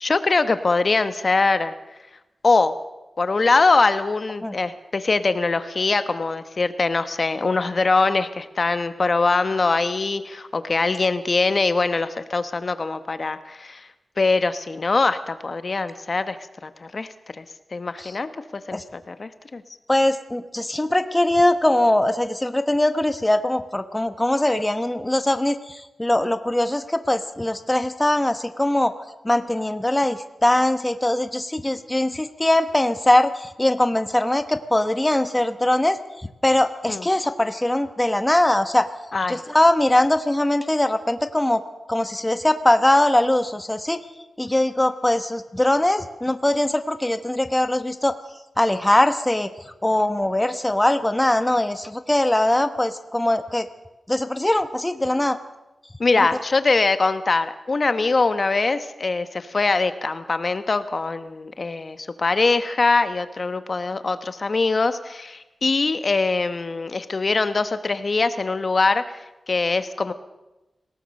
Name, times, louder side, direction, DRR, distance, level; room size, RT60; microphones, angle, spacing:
voice 1, 0.0-1.7 2.4-2.7 3.2-13.9 14.2-16.4 16.6-17.4 17.7-19.6 36.9-37.1 39.1-39.4 56.0-69.2 69.5-70.1, left 3 dB, 40° left, 11 dB, 1.0 m, -22 dB
voice 2, 19.9-28.9 29.2-36.0 36.4-38.9 39.3-41.6 41.9-44.0 44.4-48.1 48.6-49.5 49.8-53.7 54.1-55.4, left 1 dB, 15° left, 9 dB, 1.0 m, -21 dB
26.5 x 17.5 x 6.4 m, 1.0 s
wide cardioid pair, 120°, 0 cm